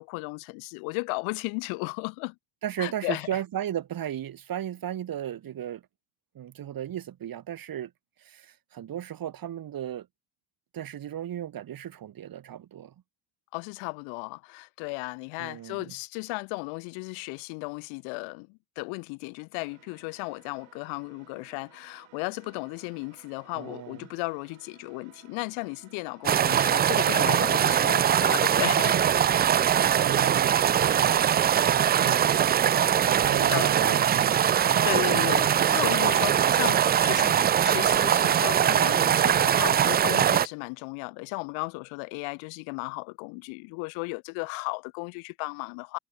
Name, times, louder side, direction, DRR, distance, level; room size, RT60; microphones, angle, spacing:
voice 1, 0.0-2.3 2.8-3.3 13.5-29.0 33.4-33.9 34.8-46.0, left 34 dB, 80° left, 2.7 m, -35 dB
voice 2, 2.6-5.8 6.3-7.9 8.2-10.1 10.7-12.9 15.4-15.9 23.5-24.0 30.0-31.2 32.0-32.4 33.0-34.4 34.9-35.1, right 10 dB, 45° right, 2.1 m, -35 dB
sound 1, 19.6-35.2, right 18 dB, 70° right, 6.2 m, -57 dB
sound 2, 26.2-40.5, right 9 dB, 25° right, 0.3 m, -22 dB
supercardioid pair, 85°, 47 cm